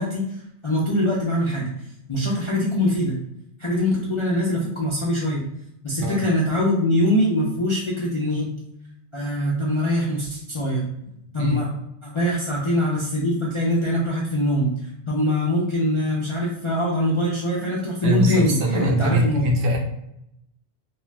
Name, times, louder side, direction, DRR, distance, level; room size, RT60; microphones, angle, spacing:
voice 1, 0.0-1.7 2.1-3.2 3.6-5.5 5.8-8.5 9.1-10.9 11.3-11.7 12.1-14.8 15.1-19.4, equal, 45° left, -6 dB, 0.4 m, -23 dB
voice 2, 18.0-19.8, equal, 80° right, 0 dB, 0.9 m, -22 dB
2.4 x 2.4 x 3.2 m, 0.80 s
omnidirectional pair, 1.2 m